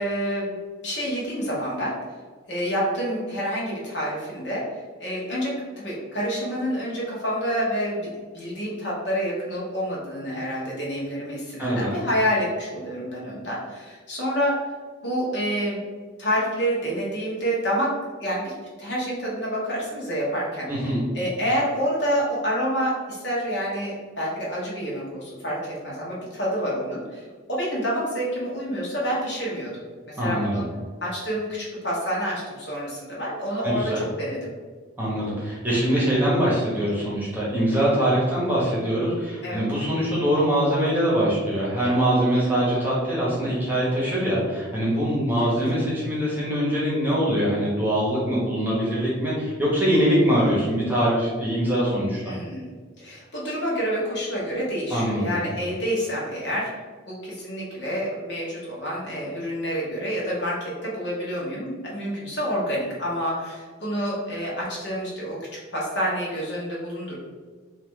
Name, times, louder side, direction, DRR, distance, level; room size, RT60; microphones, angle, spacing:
voice 1, 0.0-2.0 2.5-4.6 5.0-8.1 8.3-14.6 15.0-15.8 16.2-18.5 18.8-20.7 21.1-29.8 30.0-30.6 31.0-34.5 39.4-39.6 45.4-45.5 52.2-52.7 53.0-56.7 57.1-65.5 65.7-67.1, equal, 60° left, -6 dB, 1.4 m, -28 dB
voice 2, 11.6-11.9 20.7-21.0 30.2-30.6 33.6-34.0 35.0-52.2 54.9-55.4, equal, 10° right, -7 dB, 1.1 m, -23 dB
4.1 x 2.8 x 3.8 m, 1.5 s
head